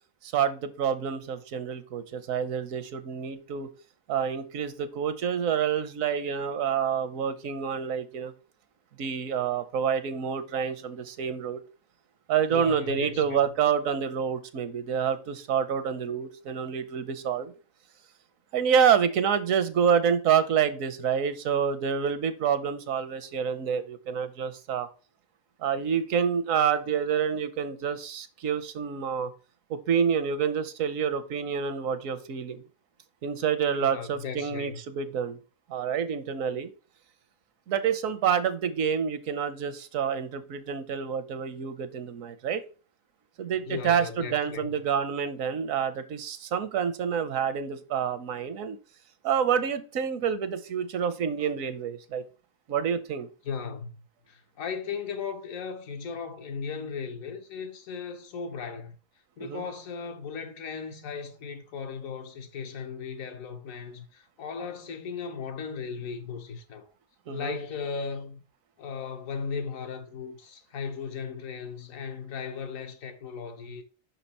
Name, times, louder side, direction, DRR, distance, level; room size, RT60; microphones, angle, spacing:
voice 1, 0.2-3.7 4.1-8.3 9.0-11.6 12.3-17.5 18.5-24.9 25.6-29.3 29.7-32.6 33.2-35.4 35.7-36.7 37.7-42.6 43.4-48.8 49.2-52.2 52.7-53.3 59.4-59.6 67.3-67.6, right 7 dB, 75° right, 1.1 m, -28 dB
voice 2, 12.4-13.4 33.8-34.8 43.4-44.8 53.4-54.0 54.3-58.9 59.4-66.9 67.3-68.4 68.8-73.8, left 5 dB, 75° left, 1.3 m, -37 dB
5.5 x 4.4 x 4.1 m
omnidirectional pair, 1.4 m